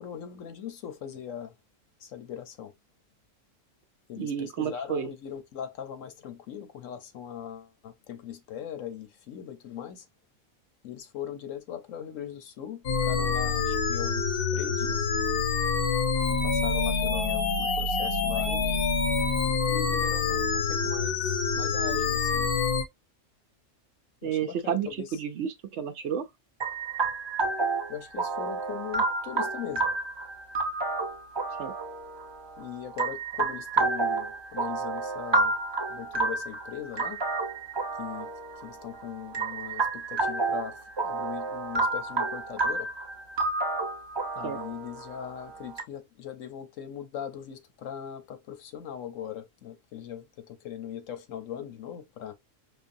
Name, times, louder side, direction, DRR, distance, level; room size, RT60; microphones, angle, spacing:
voice 1, 0.0-1.5 2.0-2.7 4.1-10.0 10.8-15.1 16.4-18.9 19.4-22.5 24.2-25.1 27.9-29.9 32.6-35.5 35.9-37.2 38.0-38.3 38.6-42.9 44.4-52.3, left 9 dB, 85° left, 1.2 m, -40 dB
voice 2, 4.2-5.1 24.2-26.3 31.6-31.7 44.4-44.6, right 8 dB, 65° right, 0.9 m, -31 dB
sound 1, 12.8-22.8, left 5 dB, 55° left, 0.9 m, -26 dB
sound 2, 26.6-45.8, right 3 dB, 30° right, 0.5 m, -30 dB
5.3 x 2.3 x 2.6 m
omnidirectional pair, 1.3 m